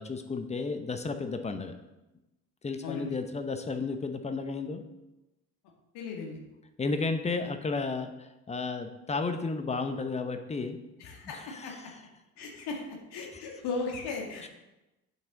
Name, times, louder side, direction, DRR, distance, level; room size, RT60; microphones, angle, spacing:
voice 1, 0.0-1.8 2.6-4.8 6.8-10.8 11.2-11.8 13.3-13.4 14.4-14.5, left 4 dB, 15° left, 8 dB, 0.8 m, -33 dB
voice 2, 2.8-3.2 5.9-6.4 11.0-11.7 12.4-12.8 13.1-14.5, left 4 dB, 55° left, -1 dB, 2.1 m, -36 dB
9.1 x 5.8 x 3.9 m, 0.99 s
figure-of-eight pair, 50°, 45 cm